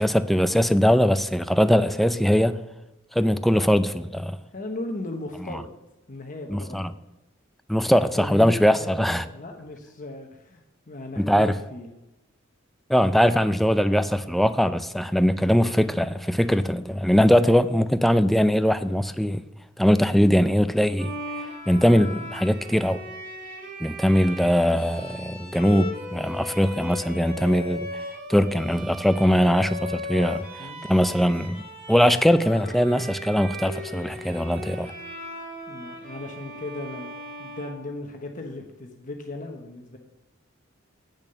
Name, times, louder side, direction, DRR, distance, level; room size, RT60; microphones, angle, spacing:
voice 1, 0.0-2.6 3.1-4.4 5.5-5.6 6.5-6.9 7.7-9.2 11.2-11.5 12.9-19.4 19.8-21.1 21.7-23.0 23.8-27.9 28.3-30.4 30.8-31.6 31.9-34.9, equal, ahead, 0.4 m, -21 dB
voice 2, 4.5-5.7 6.1-6.9 8.2-11.9 30.6-30.8 35.7-37.1 37.4-40.0, left 2 dB, 40° left, 1.0 m, -37 dB
Bowed string instrument, 21.0-38.4, left 1 dB, 50° right, 3.0 m, -37 dB
8.3 x 7.1 x 6.8 m
head